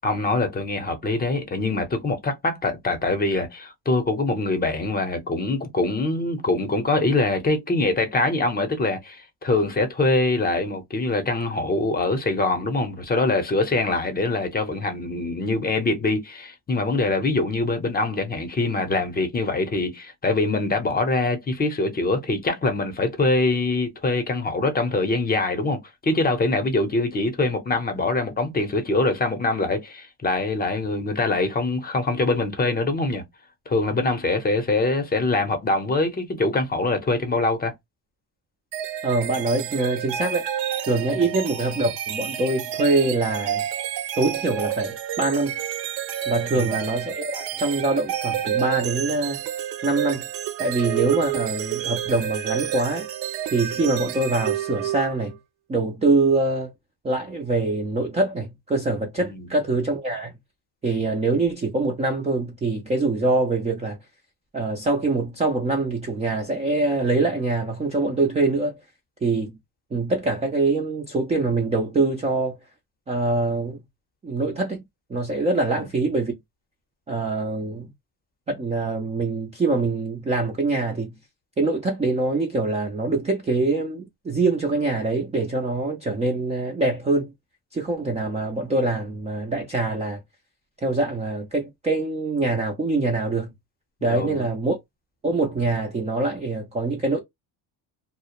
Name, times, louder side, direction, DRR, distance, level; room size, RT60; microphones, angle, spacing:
voice 1, 0.0-33.2 33.7-37.7 41.2-41.3 46.6-46.7 59.2-59.5 75.8-75.9 94.0-94.5, left 2 dB, 20° left, 0.6 m, -24 dB
sound 1, 38.7-55.4, right 11 dB, 65° right, 0.6 m, -29 dB
voice 2, 39.0-40.5 40.9-43.6 44.2-45.6 46.3-49.4 49.8-50.3 50.6-53.1 53.5-55.3 55.7-56.7 57.0-60.3 60.8-64.0 64.5-68.8 69.2-69.6 69.9-72.6 73.1-73.8 74.2-74.8 75.1-76.4 77.1-77.9 78.5-81.1 81.6-87.3 87.7-90.2 90.8-93.5 94.0-94.8 95.2-97.2, right 3 dB, 15° right, 0.3 m, -24 dB
2.3 x 2.0 x 2.8 m
cardioid pair, 125°, 46 cm